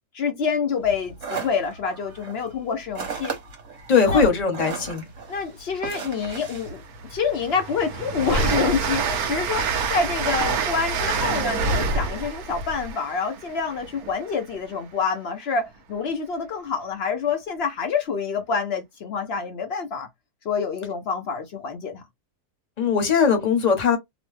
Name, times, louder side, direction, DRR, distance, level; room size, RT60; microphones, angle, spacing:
voice 1, 0.1-3.4 4.1-4.2 5.3-20.1 20.4-22.0, left 5 dB, 75° left, 0.5 m, -27 dB
sound 1, 0.8-7.5, right 4 dB, 55° right, 1.2 m, -36 dB
voice 2, 3.9-5.1 22.8-24.0, left 5 dB, 35° left, 0.7 m, -20 dB
Train, 6.2-6.3 6.7-14.4, right 4 dB, 70° right, 1.1 m, -27 dB
3.0 x 2.0 x 3.1 m
omnidirectional pair, 1.8 m